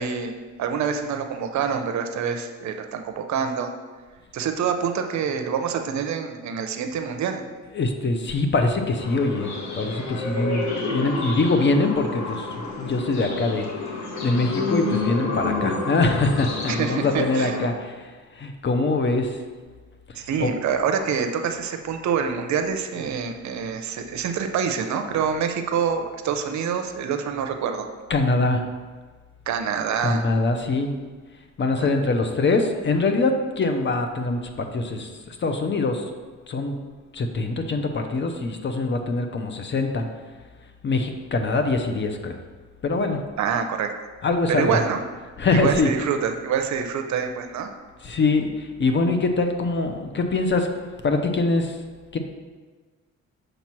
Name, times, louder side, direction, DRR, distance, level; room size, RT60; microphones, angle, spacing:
voice 1, 0.0-3.7 4.3-7.5 16.7-17.5 20.2-27.9 29.5-30.3 43.4-43.9 44.5-45.0 45.5-47.7, right 7 dB, 65° right, 6 dB, 0.7 m, -26 dB
voice 2, 7.7-13.7 14.2-19.4 20.1-20.5 28.1-28.7 30.0-30.9 31.6-36.0 36.5-36.7 37.1-40.0 40.8-42.4 42.8-43.2 44.2-44.8 45.4-45.9 48.0-51.8 52.1-52.2, left 3 dB, 40° left, 6 dB, 0.7 m, -23 dB
sound 1, 9.0-17.6, left 3 dB, 65° left, 1.2 m, -29 dB
6.5 x 3.0 x 5.8 m, 1.4 s
cardioid pair, 90°, 30 cm